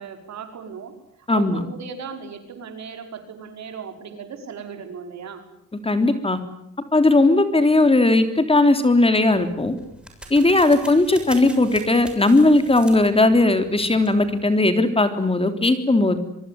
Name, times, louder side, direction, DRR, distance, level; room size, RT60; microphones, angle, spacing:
voice 1, 0.0-5.5, right 6 dB, 65° right, 6 dB, 5.7 m, -37 dB
voice 2, 1.3-1.6 5.8-6.4 6.9-9.7 10.3-16.2, left 2 dB, 20° left, 8 dB, 3.5 m, -17 dB
sound 1, 9.2-14.6, right 1 dB, 5° right, 7.1 m, -43 dB
24.5 x 24.0 x 9.5 m, 0.75 s
cardioid pair, 90°, 30 cm